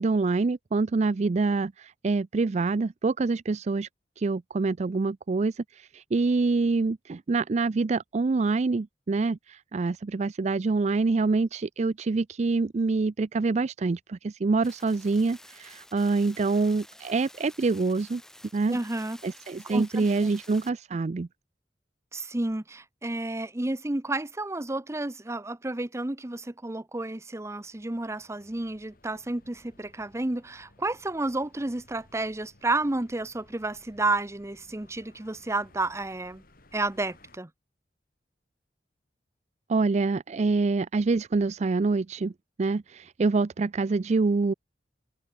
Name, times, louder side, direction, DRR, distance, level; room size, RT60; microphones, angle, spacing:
voice 1, 0.0-3.9 4.2-18.2 18.5-18.8 19.2-21.3 39.7-42.3 42.6-44.5, right 3 dB, 40° right, 0.4 m, -26 dB
sound 1, 14.6-20.7, left 1 dB, 5° left, 1.1 m, -51 dB
voice 2, 18.7-19.2 19.7-20.0 22.1-36.4 36.7-37.5, right 2 dB, 15° right, 0.7 m, -31 dB
sound 2, 27.6-37.4, left 1 dB, 55° left, 3.5 m, -59 dB
head